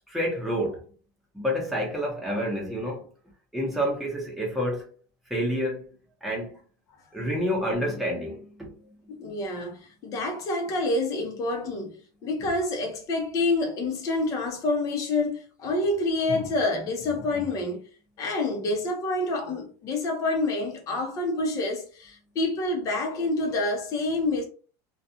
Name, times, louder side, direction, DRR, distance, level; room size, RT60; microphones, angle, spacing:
voice 1, 0.1-0.8 1.3-3.0 3.5-4.9 5.3-5.9 6.2-6.6 7.1-8.7, equal, ahead, 0.9 m, -28 dB
voice 2, 9.1-11.9 12.2-17.8 18.2-24.4, left 2 dB, 35° left, 0.8 m, -27 dB
2.4 x 2.4 x 2.8 m
supercardioid pair, 150°, 9 cm